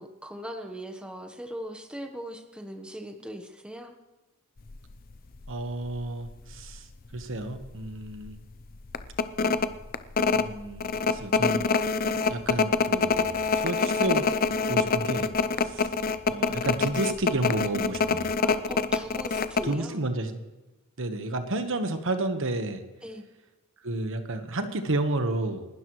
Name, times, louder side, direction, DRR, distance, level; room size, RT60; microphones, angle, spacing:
voice 1, 0.0-3.9 15.4-15.6 18.4-20.0 23.0-23.2, equal, 5° right, 4 dB, 1.1 m, -39 dB
sound 1, 4.7-4.9 5.4-5.5 5.8-6.8 7.1-7.2 7.6-7.9 8.2-8.3 8.9-19.7, left 4 dB, 40° left, 0.6 m, -25 dB
voice 2, 5.5-6.9 7.1-8.4 10.3-11.6 12.3-14.3 14.7-15.9 16.3-18.3 19.7-20.4 21.0-22.8 23.8-25.6, right 2 dB, 60° right, 7 dB, 1.3 m, -31 dB
30.0 x 12.5 x 3.2 m, 1.1 s
head